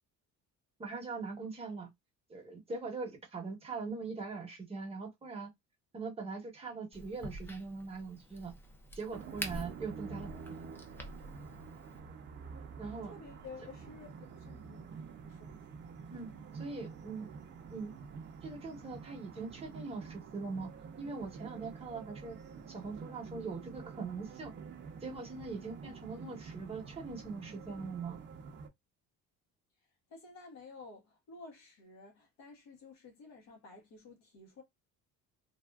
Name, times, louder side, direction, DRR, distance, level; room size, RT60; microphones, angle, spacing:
voice 1, 0.8-1.9 2.3-5.5 5.9-8.5 9.0-10.6 12.8-13.1 14.6-14.7 16.1-16.3 16.5-17.3 17.7-17.9 18.4-22.4 22.7-24.5 25.0-28.2, right 4 dB, 20° right, 1.0 m, -41 dB
Crack, 6.9-12.0, equal, 10° left, 0.4 m, -47 dB
sound 1, 9.1-28.7, right 5 dB, 40° right, 0.6 m, -48 dB
voice 2, 13.0-14.9 15.2-15.5 30.1-34.6, left 3 dB, 65° left, 1.3 m, -52 dB
3.3 x 2.5 x 2.3 m
cardioid pair, 165°, 29 cm